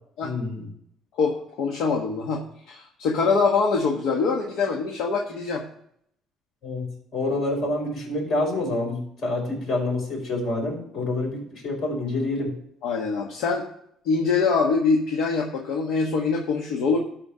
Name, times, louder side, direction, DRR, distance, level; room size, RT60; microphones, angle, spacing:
voice 1, 0.2-0.7 6.6-12.6, left 2 dB, 55° left, -1 dB, 5.2 m, -27 dB
voice 2, 1.2-5.6 12.8-13.6 14.0-17.0, left 4 dB, 75° left, 1 dB, 1.4 m, -24 dB
13.0 x 4.5 x 6.7 m, 0.69 s
cardioid pair, 130°, 0 cm